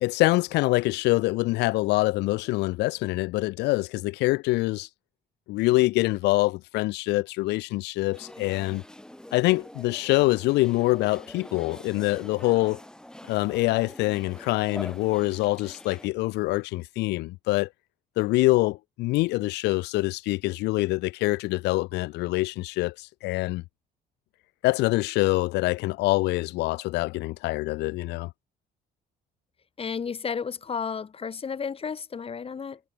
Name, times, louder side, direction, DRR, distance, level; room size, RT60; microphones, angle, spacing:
voice 1, 0.0-4.9 5.5-8.8 9.3-12.8 13.3-17.7 18.2-23.6 24.6-28.3, left 20 dB, 85° left, 1.0 m, -25 dB
sound 1, 8.1-16.1, left 1 dB, 5° left, 6.3 m, -45 dB
voice 2, 29.8-32.8, left 6 dB, 35° left, 5.3 m, -32 dB
cardioid pair, 110°, 17 cm